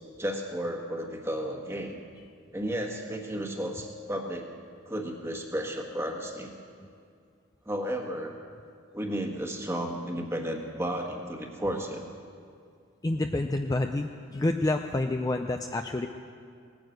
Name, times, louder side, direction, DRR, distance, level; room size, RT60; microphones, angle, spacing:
voice 1, 0.2-2.0 2.5-4.5 4.9-6.5 7.6-8.4 8.9-12.0, equal, 15° right, 2 dB, 1.4 m, -33 dB
voice 2, 13.0-16.1, left 2 dB, 15° left, 5 dB, 0.4 m, -28 dB
18.0 x 9.5 x 7.8 m, 2.3 s
head